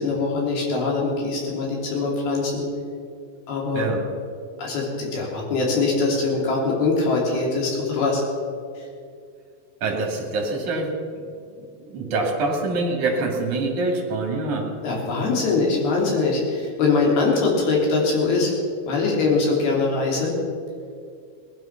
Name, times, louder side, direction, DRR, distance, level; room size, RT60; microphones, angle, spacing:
voice 1, 0.0-2.6 3.5-3.9 4.6-8.2 14.8-18.5 18.9-20.3, left 3 dB, 50° left, -2 dB, 4.7 m, -22 dB
voice 2, 9.8-10.9 11.6-14.7, right 3 dB, 45° right, 0 dB, 3.4 m, -25 dB
19.0 x 12.5 x 6.0 m, 2.3 s
omnidirectional pair, 5.9 m